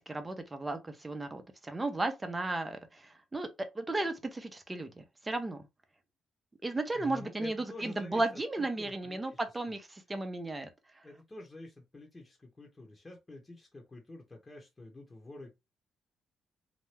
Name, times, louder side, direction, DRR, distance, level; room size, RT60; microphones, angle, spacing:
voice 1, 0.1-3.5 3.7-5.7 6.6-10.7, right 2 dB, 20° right, 0.7 m, -35 dB
voice 2, 6.9-8.2 8.6-9.8 11.0-15.5, left 2 dB, 20° left, 1.0 m, -48 dB
2.9 x 2.2 x 3.3 m
cardioid pair, 90°, 0 cm